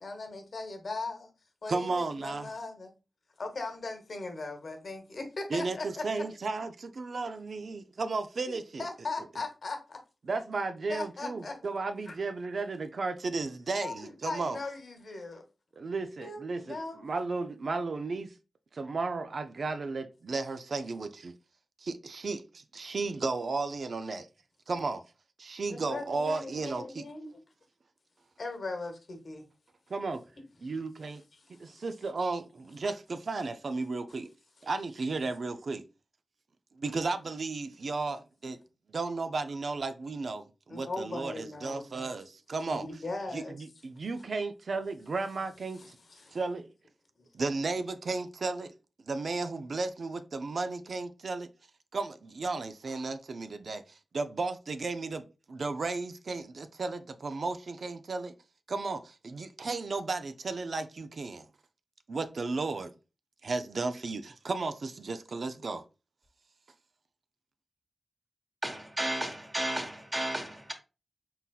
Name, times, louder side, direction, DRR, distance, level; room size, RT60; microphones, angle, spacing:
voice 1, 0.0-1.3 1.6-2.9 3.4-6.2 8.5-10.0 10.9-11.6 12.1-12.2 13.8-15.4 16.2-17.0 25.7-27.4 28.4-29.5 31.4-31.8 36.9-37.0 40.7-41.9 42.7-43.5 45.7-46.4 47.2-47.3, left 3 dB, 65° left, 1.1 m, -39 dB
voice 2, 1.7-2.5 5.5-8.8 10.2-14.6 15.8-18.3 18.7-21.3 21.8-24.3 24.7-25.0 25.4-27.1 29.9-30.2 30.6-31.2 31.6-34.3 34.6-35.9 36.8-38.6 38.9-42.9 43.3-46.0 46.3-46.7 47.3-48.7 49.1-51.5 51.9-58.3 58.7-61.5 62.1-62.9 63.4-65.8, right 3 dB, 65° right, 0.4 m, -34 dB
voice 3, 68.6-70.7, right 1 dB, 25° right, 1.2 m, -33 dB
4.1 x 3.8 x 2.3 m
cardioid pair, 45°, 0 cm